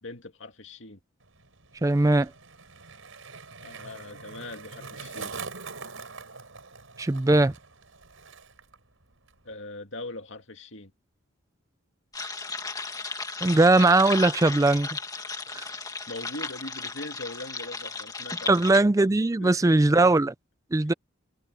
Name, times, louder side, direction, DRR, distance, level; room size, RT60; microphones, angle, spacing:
voice 1, 0.0-1.0 3.6-5.3 9.4-10.9 16.1-18.7 19.4-20.1, left 2 dB, 60° left, 2.3 m, -41 dB
Skateboard, 1.2-8.8 9.0-9.5, right 4 dB, 70° right, 4.9 m, -43 dB
voice 2, 1.8-2.3 7.0-7.5 13.4-14.9 15.5-15.7 18.5-20.3 20.7-20.9, right 2 dB, 15° right, 0.4 m, -20 dB
sound 1, 12.1-18.8, left 4 dB, 15° left, 2.1 m, -35 dB
head